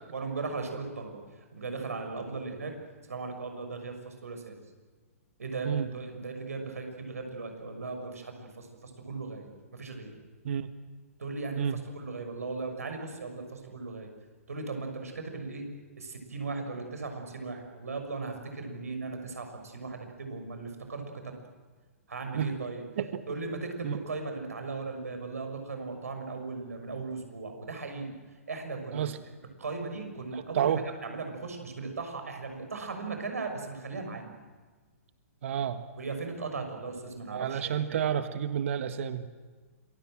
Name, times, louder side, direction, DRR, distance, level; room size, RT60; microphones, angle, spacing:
voice 1, 0.1-1.2 1.5-2.7 3.0-4.5 5.4-10.1 11.2-14.1 14.5-15.7 16.0-21.3 22.1-22.8 23.3-28.1 28.5-29.1 29.6-30.7 31.0-34.3 36.0-38.0, right 3 dB, 80° right, 5 dB, 6.4 m, -37 dB
voice 2, 35.4-35.8 37.3-39.3, right 9 dB, 60° right, 11 dB, 1.6 m, -30 dB
27.5 x 22.0 x 7.7 m, 1.4 s
figure-of-eight pair, 120°, 8 cm